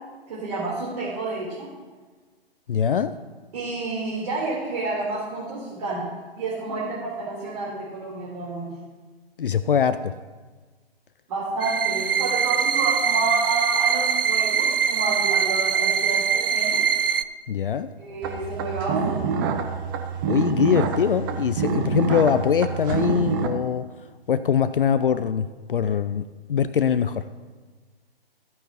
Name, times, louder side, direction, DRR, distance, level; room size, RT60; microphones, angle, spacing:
voice 1, 0.3-1.7 3.5-8.7 11.3-16.9 18.0-19.5, right 3 dB, 40° right, -8 dB, 3.8 m, -29 dB
voice 2, 2.7-3.1 9.4-10.1 17.5-17.9 20.3-23.9 24.3-27.3, left 7 dB, 60° left, 12 dB, 0.5 m, -23 dB
sound 1, 11.6-17.2, right 7 dB, 65° right, 0.6 m, -22 dB
sound 2, 18.2-23.5, right 6 dB, 20° right, 0.7 m, -26 dB
14.5 x 9.7 x 3.0 m, 1.4 s
figure-of-eight pair, 130°, 31 cm